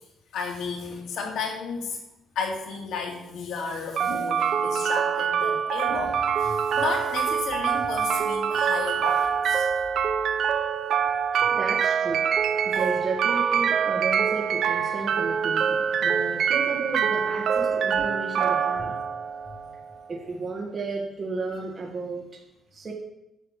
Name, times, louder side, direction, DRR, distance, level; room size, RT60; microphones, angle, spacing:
voice 1, 0.3-2.0 2.3-9.7 12.7-12.8 18.8-18.9 19.4-19.5, left 5 dB, 85° left, 1 dB, 2.6 m, -33 dB
sound 1, 4.0-20.0, right 7 dB, 60° right, 0.7 m, -25 dB
voice 2, 11.5-12.2 12.6-19.0 20.1-22.3 22.7-22.9, right 3 dB, 30° right, -2 dB, 1.8 m, -33 dB
11.5 x 6.7 x 7.4 m, 0.92 s
cardioid pair, 170°, 0 cm